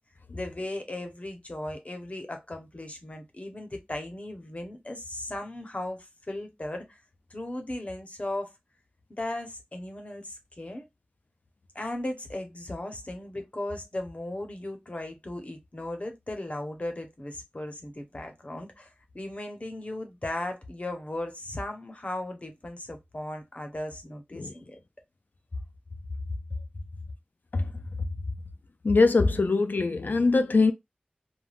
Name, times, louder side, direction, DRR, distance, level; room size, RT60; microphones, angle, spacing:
voice 1, 0.3-7.0 7.3-8.5 9.1-10.8 11.7-24.8 26.5-26.6, left 1 dB, 45° left, 0.7 m, -37 dB
voice 2, 28.8-30.7, left 3 dB, 75° left, 0.3 m, -22 dB
3.3 x 2.2 x 2.3 m
wide cardioid pair, 55°, 3 cm